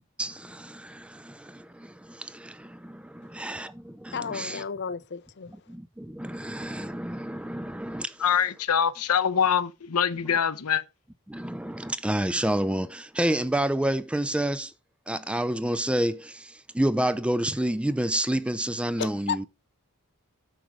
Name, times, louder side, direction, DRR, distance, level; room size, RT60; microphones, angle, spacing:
voice 1, 0.2-4.6 5.7-8.2 11.3-14.7 15.1-19.5, right 1 dB, 5° right, 0.4 m, -29 dB
voice 2, 4.1-5.5 19.0-19.5, left 6 dB, 50° left, 0.5 m, -33 dB
voice 3, 8.2-10.8, left 7 dB, 85° left, 0.7 m, -24 dB
9.0 x 6.2 x 4.5 m
head